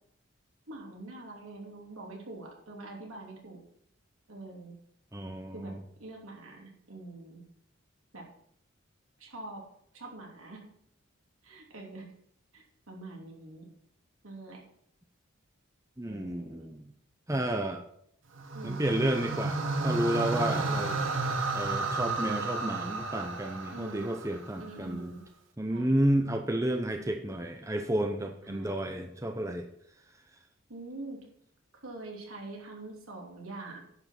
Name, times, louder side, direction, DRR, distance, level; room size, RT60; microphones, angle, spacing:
voice 1, 0.7-3.6 4.3-4.7 5.5-5.7 6.0-7.4 8.1-8.2 9.2-9.6 9.9-10.6 11.4-12.1 12.5-13.7 14.2-14.6 16.0-16.7 18.5-18.9 20.4-20.7 22.2-22.6 23.7-24.1 24.6-25.3 25.7-25.9 28.4-28.7 30.7-31.2 31.8-33.8, right 2 dB, 85° right, -1 dB, 3.0 m, -44 dB
voice 2, 5.1-5.8 16.0-16.9 17.3-17.8 18.6-21.0 21.5-25.1 25.6-29.7, right 1 dB, 15° right, 4 dB, 0.7 m, -31 dB
sound 1, 18.4-24.7, right 3 dB, 65° right, 1.2 m, -32 dB
10.5 x 5.8 x 5.8 m, 0.69 s
head